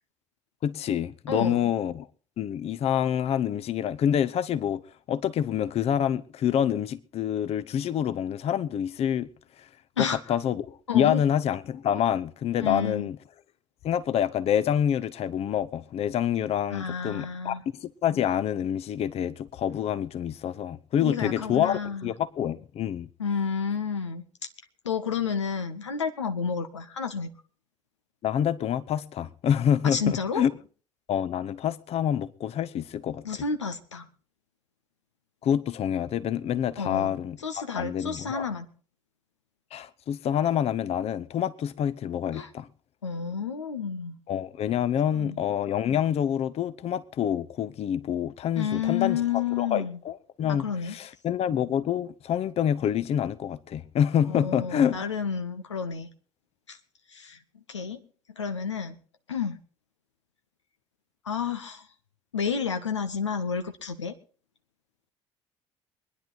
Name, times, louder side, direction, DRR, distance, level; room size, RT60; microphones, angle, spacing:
voice 1, 0.6-2.1 2.4-4.8 5.1-9.3 10.0-13.2 13.8-23.1 28.2-30.5 31.1-33.4 35.4-37.4 37.8-38.5 39.7-42.7 44.3-55.0, left 9 dB, 45° left, 0.8 m, -27 dB
voice 2, 1.3-1.7 10.0-10.3 10.9-11.2 12.6-13.1 16.7-17.6 21.0-22.1 23.2-24.2 24.8-27.3 29.8-30.4 33.2-34.1 36.8-37.1 37.4-38.7 42.3-42.5 43.0-44.2 45.1-45.4 48.6-50.0 50.5-50.9 54.3-56.1 56.7-56.8 57.1-57.4 57.7-58.0 58.4-59.0 59.3-59.6 61.2-61.9 62.3-64.1, left 6 dB, 80° left, 0.8 m, -30 dB
24.0 x 10.5 x 3.9 m
figure-of-eight pair, 50°, 15 cm